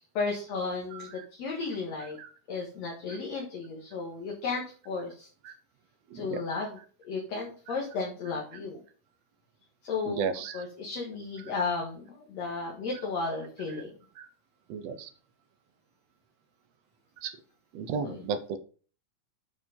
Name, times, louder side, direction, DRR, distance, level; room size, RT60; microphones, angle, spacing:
voice 1, 0.1-2.2 2.5-5.3 6.1-6.8 7.0-8.8 9.8-10.2 10.5-13.9 18.0-18.2, left 4 dB, 60° left, -2 dB, 2.8 m, -34 dB
voice 2, 0.9-1.2 2.2-2.3 3.1-3.2 5.4-5.5 6.1-6.4 10.1-10.6 14.2-14.3 14.7-15.1 17.2-17.3 17.7-18.6, right 6 dB, 70° right, 10 dB, 1.7 m, -34 dB
9.4 x 4.9 x 5.3 m, 0.40 s
omnidirectional pair, 3.7 m